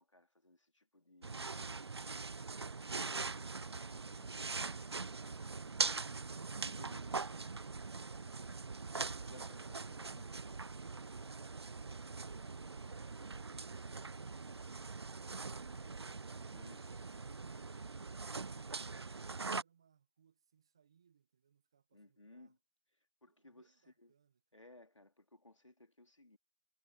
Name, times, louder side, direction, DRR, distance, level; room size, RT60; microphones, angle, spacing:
voice 1, 0.0-1.9 3.5-5.3 6.3-7.5 9.1-10.8 16.4-17.2 21.9-22.6 22.9-24.1 24.5-26.4, left 2 dB, 80° left, 3.3 m, -62 dB
sound 1, 1.2-19.6, right 4 dB, 60° right, 0.4 m, -42 dB
voice 2, 17.0-22.5 23.3-24.4, right 7 dB, 10° right, 1.0 m, -73 dB
figure-of-eight pair, 170°, 16 cm